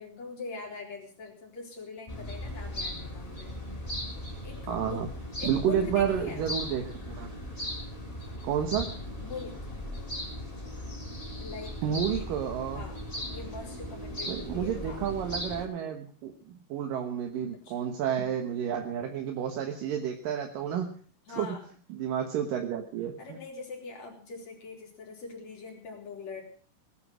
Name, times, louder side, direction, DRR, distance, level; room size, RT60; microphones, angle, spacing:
voice 1, 0.0-3.5 4.4-5.1 5.4-6.5 9.2-9.5 11.4-12.3 12.7-13.0 13.3-15.0 17.7-17.8 21.3-21.7 23.2-26.4, left 4 dB, 50° left, 0 dB, 5.2 m, -42 dB
sound 1, 2.1-15.7, left 1 dB, 10° left, 3.3 m, -38 dB
voice 2, 4.7-5.1 5.4-7.3 8.4-8.9 11.8-12.8 14.3-20.9 21.4-21.5 21.9-23.4, right 8 dB, 75° right, 4 dB, 3.0 m, -30 dB
19.0 x 10.5 x 6.3 m, 0.43 s
omnidirectional pair, 4.0 m